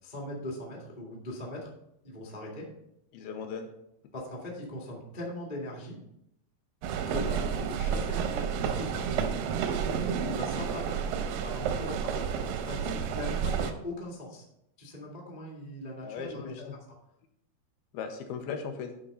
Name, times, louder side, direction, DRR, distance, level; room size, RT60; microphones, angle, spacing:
voice 1, 0.0-1.7 2.0-2.7 4.1-6.0 7.0-9.3 10.2-11.0 11.4-14.4 14.8-16.7, left 1 dB, 40° left, -2 dB, 0.5 m, -40 dB
voice 2, 3.1-3.7 16.0-16.8 17.9-18.9, left 6 dB, 75° left, 5 dB, 2.5 m, -37 dB
sound 1, 6.8-13.7, right 7 dB, 85° right, 2.1 m, -30 dB
11.0 x 3.7 x 5.3 m, 0.79 s
omnidirectional pair, 4.6 m